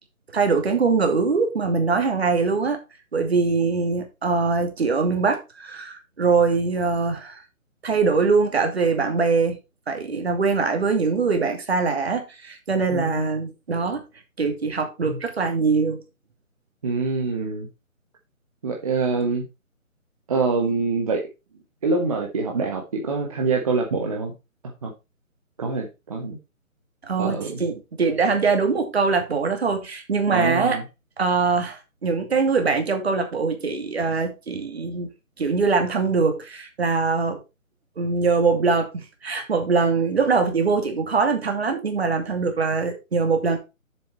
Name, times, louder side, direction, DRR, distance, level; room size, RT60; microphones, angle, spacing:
voice 1, 0.3-2.8 3.1-7.4 7.8-9.6 9.9-14.0 14.4-16.0 27.0-30.8 31.2-35.1 35.4-37.4 38.0-43.6, right 4 dB, 45° right, 2.6 m, -22 dB
voice 2, 12.9-13.2 15.0-15.2 16.8-17.7 18.6-19.4 20.3-21.2 21.8-24.3 24.8-24.9 25.6-26.4 27.2-27.6 30.3-30.8, right 4 dB, 25° right, 1.2 m, -25 dB
7.6 x 7.0 x 4.4 m
figure-of-eight pair, 150°, 42 cm